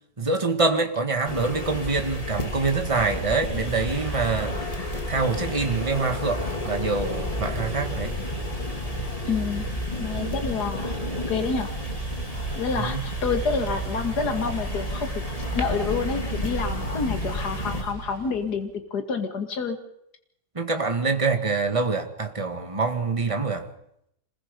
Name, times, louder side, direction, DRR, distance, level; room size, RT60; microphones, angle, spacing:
voice 1, 0.2-4.7 4.9-8.1 12.8-13.0 20.6-23.7, right 4 dB, 20° right, 2.0 m, -25 dB
sound 1, 1.2-17.8, left 1 dB, 20° left, 2.5 m, -31 dB
Engine, 2.9-18.7, right 4 dB, 75° right, 2.5 m, -38 dB
voice 2, 9.3-9.7 10.0-11.0 11.3-11.7 12.6-15.1 15.5-19.8, left 5 dB, 60° left, 2.7 m, -28 dB
27.0 x 21.5 x 5.4 m
omnidirectional pair, 1.9 m